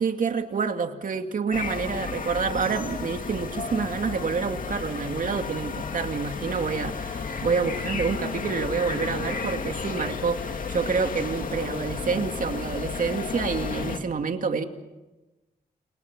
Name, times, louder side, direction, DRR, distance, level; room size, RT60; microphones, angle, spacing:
voice 1, 0.0-14.6, right 5 dB, 55° right, 5 dB, 2.4 m, -28 dB
sound 1, 1.5-14.0, left 5 dB, 55° left, 2.5 m, -32 dB
29.5 x 24.5 x 6.1 m, 1.1 s
cardioid pair, 95°, 17 cm